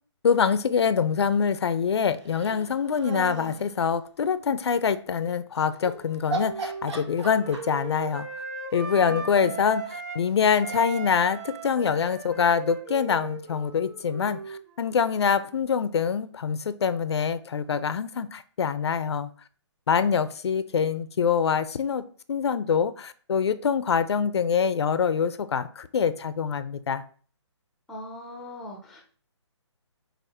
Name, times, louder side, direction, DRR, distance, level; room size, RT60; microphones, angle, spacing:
voice 1, 0.2-8.3 8.7-19.3 19.9-22.0 22.3-27.0, left 6 dB, 65° left, 0.4 m, -25 dB
sound 1, 2.2-3.6 5.7-5.9 6.3-7.9, right 3 dB, 70° right, 1.9 m, -34 dB
Wind instrument woodwind instrument, 5.7-10.2 10.5-15.0, right 5 dB, 30° right, 0.9 m, -38 dB
voice 2, 9.0-9.6 27.9-29.1, equal, ahead, 0.4 m, -40 dB
6.3 x 2.4 x 3.3 m
hypercardioid pair, 155°, 15 cm